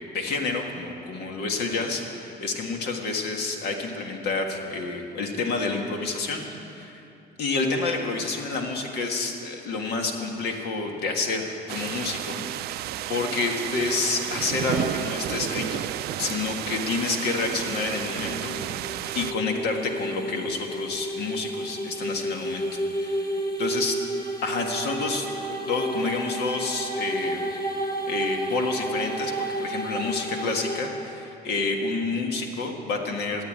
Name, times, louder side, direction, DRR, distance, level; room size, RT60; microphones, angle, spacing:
voice 1, 0.1-7.0 7.4-12.8 13.1-15.9 16.2-23.2 23.6-24.0 24.4-27.6 28.1-33.4, left 3 dB, 75° left, 2 dB, 1.7 m, -29 dB
sound 1, 11.7-19.3, right 14 dB, 70° right, 0.4 m, -32 dB
sound 2, 17.3-30.8, right 1 dB, 20° left, 1.4 m, -32 dB
13.5 x 8.2 x 9.0 m, 2.7 s
cardioid pair, 110°, 17 cm